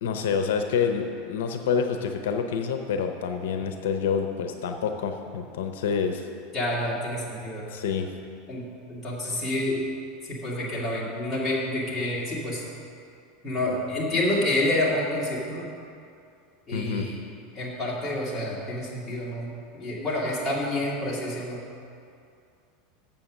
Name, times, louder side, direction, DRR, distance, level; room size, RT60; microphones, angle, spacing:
voice 1, 0.0-6.3 7.7-8.1 16.7-17.1, left 6 dB, 90° left, 6 dB, 0.6 m, -27 dB
voice 2, 6.5-7.7 8.5-9.8 10.2-12.6 13.4-15.7 16.7-17.2 17.5-19.5 19.7-21.6, left 1 dB, 15° left, -7 dB, 2.1 m, -28 dB
7.5 x 7.0 x 6.3 m, 2.5 s
supercardioid pair, 150°, 0 cm